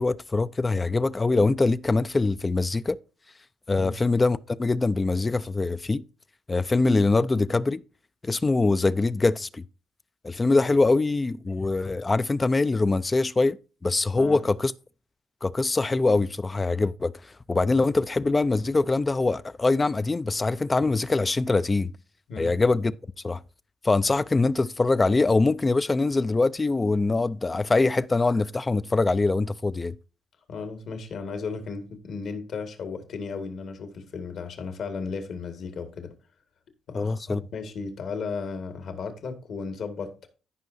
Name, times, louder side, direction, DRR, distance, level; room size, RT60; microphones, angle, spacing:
voice 1, 0.0-3.0 3.7-6.0 6.5-7.8 8.2-9.6 10.2-13.6 13.8-14.7 15.4-21.9 22.4-22.9 23.2-23.4 23.8-30.0 36.9-37.4, left 3 dB, 25° left, 0.4 m, -23 dB
voice 2, 30.5-36.1 36.9-40.3, left 5 dB, 65° left, 1.8 m, -35 dB
15.0 x 5.4 x 2.6 m
cardioid pair, 90°, 0 cm